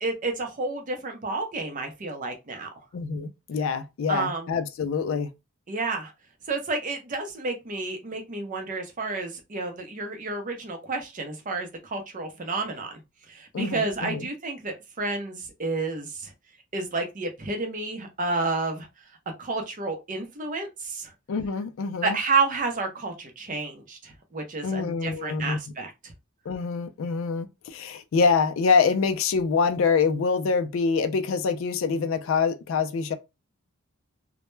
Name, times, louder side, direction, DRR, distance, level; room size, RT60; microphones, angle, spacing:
voice 1, 0.0-2.7 4.1-4.5 5.7-6.1 6.5-13.0 13.3-16.3 16.7-18.9 19.4-21.1 22.0-26.1, right 3 dB, 35° right, 0.5 m, -30 dB
voice 2, 2.9-5.3 13.5-14.3 21.3-22.2 24.6-25.6 26.5-33.1, left 5 dB, 65° left, 0.3 m, -25 dB
2.1 x 2.1 x 3.0 m
head